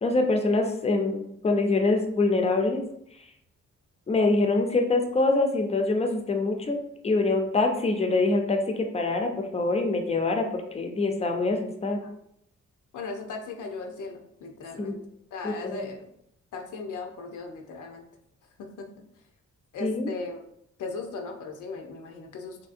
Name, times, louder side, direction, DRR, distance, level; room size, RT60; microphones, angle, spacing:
voice 1, 0.0-2.8 4.1-6.8 7.0-10.5 10.7-12.0 14.8-14.9 15.4-15.9 19.8-20.1, left 3 dB, 20° left, 4 dB, 0.4 m, -25 dB
voice 2, 12.9-15.0 15.3-16.1 16.5-18.0 18.6-18.9 19.7-20.5 20.8-22.6, left 3 dB, 85° left, 2 dB, 0.6 m, -37 dB
3.1 x 2.6 x 2.4 m, 0.75 s
cardioid pair, 100°, 30 cm